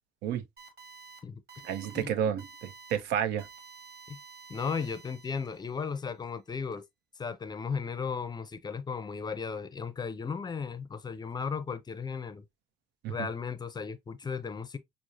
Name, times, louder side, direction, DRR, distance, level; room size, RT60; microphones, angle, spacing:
sound 1, 0.6-1.2 1.5-2.0 2.4-3.0 3.4-5.7, right 5 dB, 65° right, 1.6 m, -51 dB
voice 1, 1.6-3.5 13.0-13.3, right 9 dB, 85° right, 0.6 m, -31 dB
voice 2, 4.5-6.8 7.2-12.4 13.1-14.8, left 5 dB, 25° left, 0.5 m, -35 dB
6.1 x 2.0 x 2.5 m
cardioid pair, 110°, 17 cm